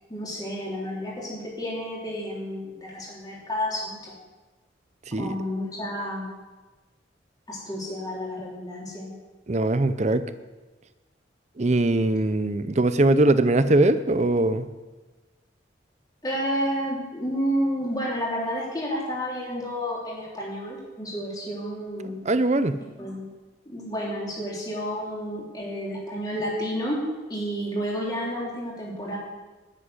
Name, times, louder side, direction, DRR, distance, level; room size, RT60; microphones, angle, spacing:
voice 1, 0.1-4.2 5.2-6.3 7.5-9.1 16.2-22.2 23.0-23.3 23.7-27.0 27.3-29.2, equal, 20° left, -4 dB, 3.7 m, -30 dB
voice 2, 9.5-10.2 11.6-14.7 22.3-22.8, right 2 dB, 35° right, 12 dB, 0.6 m, -21 dB
9.9 x 7.7 x 9.4 m, 1.2 s
head